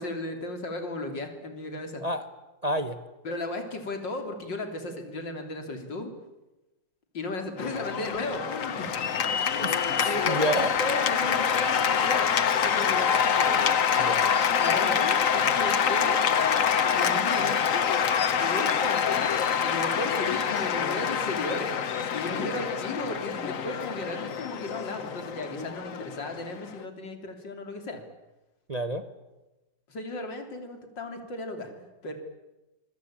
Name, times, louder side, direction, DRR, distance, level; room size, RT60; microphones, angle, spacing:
voice 1, 0.0-2.0 3.2-6.1 7.1-9.1 9.4-13.2 14.6-16.3 17.0-17.8 18.4-19.3 19.6-21.7 22.1-28.0 29.9-32.1, left 2 dB, 75° left, 6 dB, 3.9 m, -35 dB
voice 2, 2.6-3.0 9.6-10.7 14.0-14.2 28.7-29.0, right 1 dB, 25° right, 10 dB, 1.1 m, -29 dB
Cheering / Applause, 7.6-26.8, left 7 dB, 50° left, 1.3 m, -26 dB
26.0 x 22.5 x 8.8 m, 1.0 s
omnidirectional pair, 2.0 m